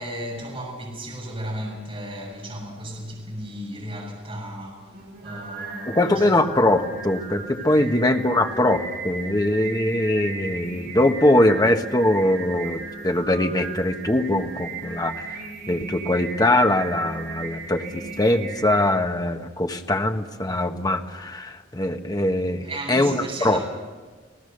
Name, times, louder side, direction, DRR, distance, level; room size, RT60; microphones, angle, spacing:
voice 1, 0.0-6.3 7.8-8.0 22.6-23.6, right 1 dB, 30° right, 6.6 m, -35 dB
Singing, 4.9-18.9, right 4 dB, 60° right, 6.8 m, -36 dB
voice 2, 5.9-23.6, left 1 dB, 20° left, 1.2 m, -22 dB
30.0 x 18.0 x 6.7 m
head